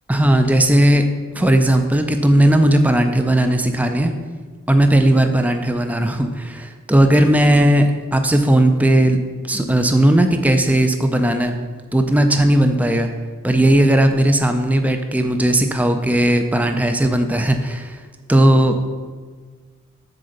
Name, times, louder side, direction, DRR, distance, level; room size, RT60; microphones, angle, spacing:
voice 1, 0.1-1.1 1.3-4.1 4.7-9.2 9.4-11.5 11.9-13.1 13.4-18.0 18.3-18.8, right 1 dB, 5° right, 6 dB, 0.4 m, -16 dB
7.9 x 3.8 x 6.4 m, 1.5 s
head